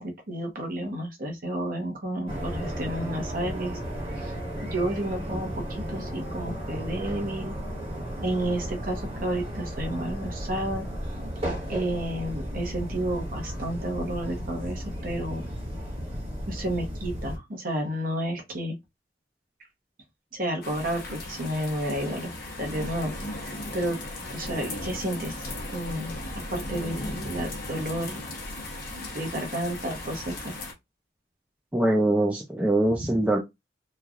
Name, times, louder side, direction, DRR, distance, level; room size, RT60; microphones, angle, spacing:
voice 1, 0.0-3.8 4.2-4.3 4.7-5.6 5.9-7.6 8.2-10.9 11.7-15.4 16.5-18.7 20.3-22.3 22.6-24.0 24.3-25.3 25.7-26.1 26.5-28.2 28.9-30.5, right 1 dB, 50° right, 0.9 m, -31 dB
sound 1, 2.3-17.4, equal, 30° right, 1.2 m, -34 dB
sound 2, 20.6-30.7, left 1 dB, 50° left, 0.9 m, -37 dB
voice 2, 31.7-33.4, right 1 dB, 10° right, 0.4 m, -23 dB
3.1 x 2.3 x 2.4 m
head